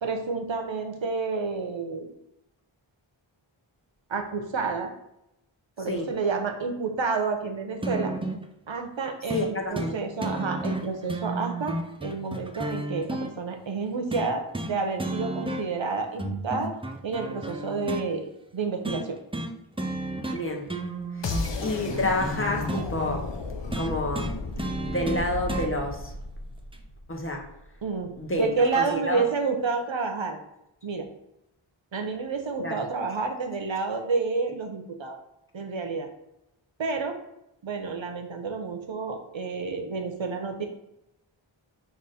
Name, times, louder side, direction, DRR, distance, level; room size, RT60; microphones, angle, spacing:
voice 1, 0.0-2.1 4.1-4.9 5.8-8.1 8.7-11.8 12.0-16.7 17.0-19.2 27.8-28.1 28.4-30.4 30.8-31.1 31.9-35.2 35.5-36.1 36.8-37.2 37.6-40.6, right 4 dB, 65° right, 5 dB, 0.7 m, -29 dB
sound 1, 7.8-8.4 9.3-9.5 9.7-9.9 10.2-13.3 14.1-14.7 15.0-15.8 16.2-18.1 18.8-19.0 19.3-19.5 19.8-20.4 20.7-22.9 23.7-25.7 26.7-26.8, right 2 dB, 10° right, 0.4 m, -32 dB
voice 2, 9.3-9.9 20.3-20.7 21.1-23.3 23.8-24.3 24.9-26.1 27.1-27.4 28.2-29.2 32.6-32.8, left 1 dB, 25° left, 0 dB, 0.8 m, -29 dB
sound 2, 21.2-27.2, left 3 dB, 60° left, 0.6 m, -34 dB
5.0 x 2.4 x 4.1 m, 0.84 s
wide cardioid pair, 40°, 49 cm